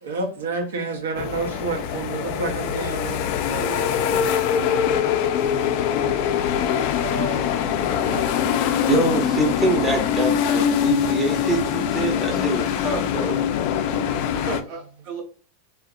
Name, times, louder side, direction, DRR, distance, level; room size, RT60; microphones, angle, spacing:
voice 1, 0.0-3.3 4.9-5.0, right 3 dB, 90° right, 0.6 m, -29 dB
sound 1, 1.2-14.6, left 8 dB, 55° left, 0.3 m, -23 dB
voice 2, 3.5-3.9 6.9-8.2 14.3-15.2, right 4 dB, 50° right, 0.9 m, -34 dB
voice 3, 8.8-13.4, right 2 dB, 10° right, 0.6 m, -24 dB
2.7 x 2.1 x 2.3 m
hypercardioid pair, 120°, 0 cm